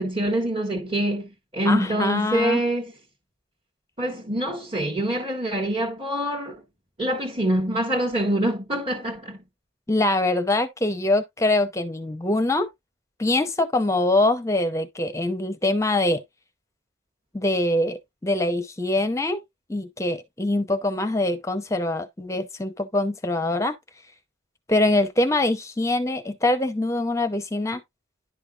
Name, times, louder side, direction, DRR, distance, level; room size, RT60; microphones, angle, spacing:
voice 1, 0.0-2.9 4.0-6.5 7.0-9.4, right 1 dB, 25° right, 1.5 m, -25 dB
voice 2, 1.7-2.6 9.9-12.7 13.2-16.2 17.3-19.4 19.7-23.7 24.7-27.8, left 2 dB, 15° left, 0.7 m, -23 dB
10.5 x 5.5 x 2.4 m
head